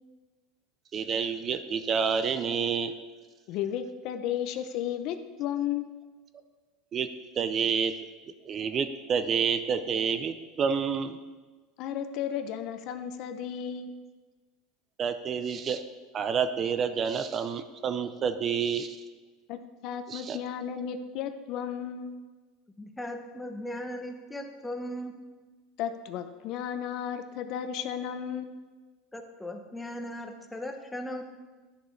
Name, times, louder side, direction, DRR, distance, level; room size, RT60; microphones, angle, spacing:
voice 1, 0.9-2.9 6.9-7.1 7.4-7.9 8.5-11.2 15.0-15.8 16.1-19.0 20.1-20.4, right 6 dB, 30° right, 10 dB, 0.4 m, -28 dB
voice 2, 3.5-5.9 11.8-14.0 19.5-19.6 19.8-22.1 25.8-28.6, left 9 dB, 55° left, 9 dB, 0.6 m, -34 dB
voice 3, 22.8-25.2 29.1-31.2, left 1 dB, 5° left, 5 dB, 0.8 m, -38 dB
10.5 x 6.5 x 3.2 m, 1.3 s
supercardioid pair, 135°, 0 cm